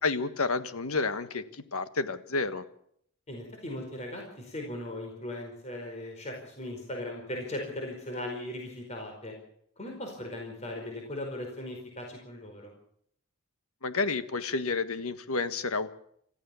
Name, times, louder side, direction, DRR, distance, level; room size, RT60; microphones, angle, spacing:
voice 1, 0.0-1.4 1.7-2.6 13.8-15.9, left 3 dB, 85° left, 11 dB, 1.5 m, -30 dB
voice 2, 3.3-9.3 9.8-12.7, left 1 dB, 30° left, 1 dB, 4.9 m, -38 dB
27.5 x 14.5 x 7.1 m, 0.69 s
head